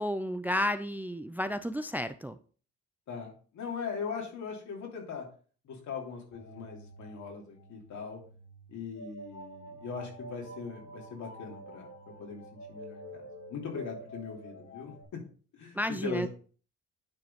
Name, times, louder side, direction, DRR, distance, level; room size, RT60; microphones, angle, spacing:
voice 1, 0.0-2.4 15.7-16.3, left 1 dB, 5° right, 11 dB, 0.4 m, -32 dB
voice 2, 3.1-5.3 5.6-8.2 8.7-12.4 12.7-15.2 15.5-16.3, left 5 dB, 70° left, 0 dB, 2.9 m, -40 dB
sound 1, 6.3-15.0, right 1 dB, 55° left, 2.4 m, -48 dB
9.7 x 3.9 x 5.0 m, 0.41 s
cardioid pair, 90°, 30 cm